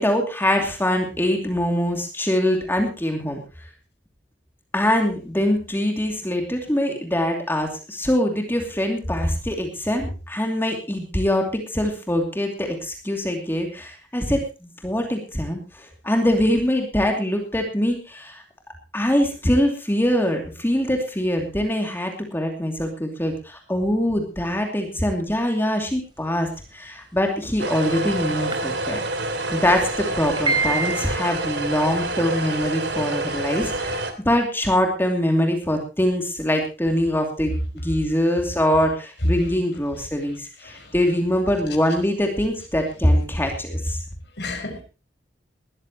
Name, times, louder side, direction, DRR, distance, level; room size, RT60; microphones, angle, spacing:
voice 1, 0.0-3.4 4.7-18.4 18.9-29.0 29.5-37.5 37.8-44.0, left 1 dB, 15° left, 2.7 m, -23 dB
sound 1, 27.2-27.7 28.5-28.6 28.9-29.0 29.4-29.5 30.1-31.5, right 3 dB, 25° right, 4.0 m, -25 dB
sound 2, 27.6-34.1, right 2 dB, 75° right, 2.7 m, -27 dB
voice 2, 40.3-41.0 41.7-41.8 44.4-44.8, left 3 dB, 75° left, 5.8 m, -35 dB
20.0 x 14.0 x 3.0 m
head